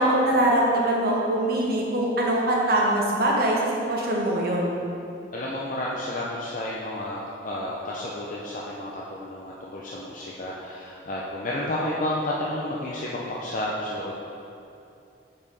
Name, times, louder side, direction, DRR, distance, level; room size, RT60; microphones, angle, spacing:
voice 1, 0.0-4.7, right 1 dB, 55° right, -3 dB, 1.1 m, -23 dB
voice 2, 5.3-14.2, left 1 dB, 45° left, -5 dB, 0.6 m, -31 dB
4.9 x 4.8 x 5.4 m, 2.7 s
head